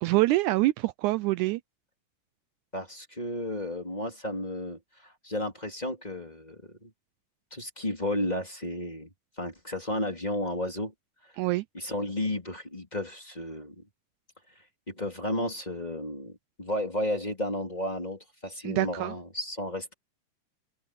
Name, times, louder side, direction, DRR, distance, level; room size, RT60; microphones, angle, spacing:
voice 1, 0.0-1.6 11.4-11.6 18.6-19.1, right 18 dB, 80° right, 1.9 m, -25 dB
voice 2, 2.7-6.9 7.5-9.1 9.4-10.9 11.7-13.8 14.9-19.9, left 1 dB, 15° left, 3.3 m, -33 dB
open air
omnidirectional pair, 3.7 m